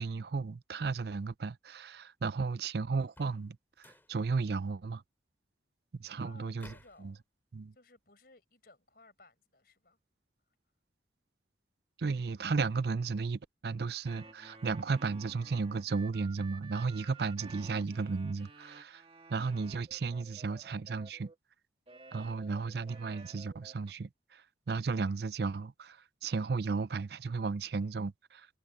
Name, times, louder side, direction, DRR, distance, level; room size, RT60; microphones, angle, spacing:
voice 1, 0.0-5.0 5.9-6.7 7.0-7.1 7.5-7.7 12.0-19.0 19.3-21.3 22.1-28.5, right 4 dB, 60° right, 0.5 m, -34 dB
sound 1, 3.0-3.5 3.8-4.2 6.6-7.0, left 1 dB, 10° left, 2.9 m, -55 dB
voice 2, 6.2-7.2 7.7-10.0, left 2 dB, 55° left, 5.4 m, -60 dB
sound 2, 14.0-21.4 21.9-23.9, right 3 dB, 30° right, 1.7 m, -53 dB
head